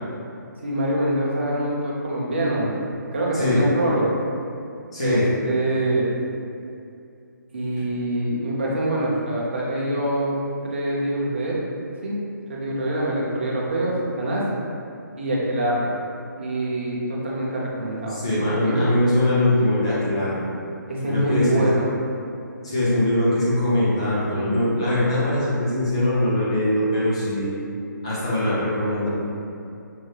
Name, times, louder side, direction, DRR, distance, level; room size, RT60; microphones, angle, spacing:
voice 1, 0.6-2.8 3.1-4.1 5.0-6.1 7.5-10.3 10.6-11.6 12.0-12.1 12.5-14.4 15.2-15.9 16.4-18.2 18.6-18.8 20.9-21.9, right 1 dB, 35° right, -4 dB, 0.7 m, -24 dB
voice 2, 3.3-3.6 4.9-5.3 18.1-20.4 21.1-21.7 22.6-27.5 28.0-29.1, left 1 dB, 15° left, -8 dB, 0.5 m, -22 dB
5.4 x 2.1 x 3.2 m, 2.5 s
hypercardioid pair, 180°, 11 cm